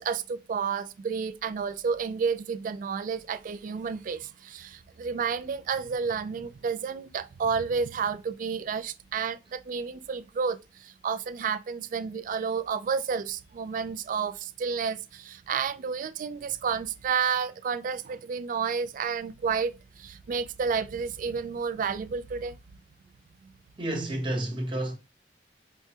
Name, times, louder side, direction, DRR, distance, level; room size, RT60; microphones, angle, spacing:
voice 1, 0.0-22.6, right 6 dB, 50° right, 0.3 m, -31 dB
voice 2, 23.8-24.9, right 1 dB, 30° right, 0.9 m, -30 dB
4.6 x 2.1 x 2.8 m
head